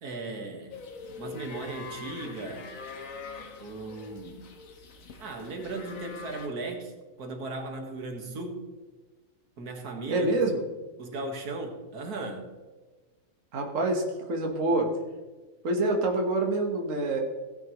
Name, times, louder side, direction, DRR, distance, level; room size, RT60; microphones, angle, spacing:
voice 1, 0.0-0.8 1.2-2.7 3.6-4.5 5.2-8.7 9.6-10.3 11.0-12.5, right 2 dB, 85° right, 3 dB, 2.1 m, -37 dB
sound 1, 0.7-6.5, left 4 dB, 65° left, 1.5 m, -43 dB
voice 2, 10.1-10.6 13.5-14.9 15.6-17.2, right 2 dB, 60° right, 2 dB, 1.7 m, -26 dB
16.5 x 9.7 x 3.1 m, 1.3 s
omnidirectional pair, 1.6 m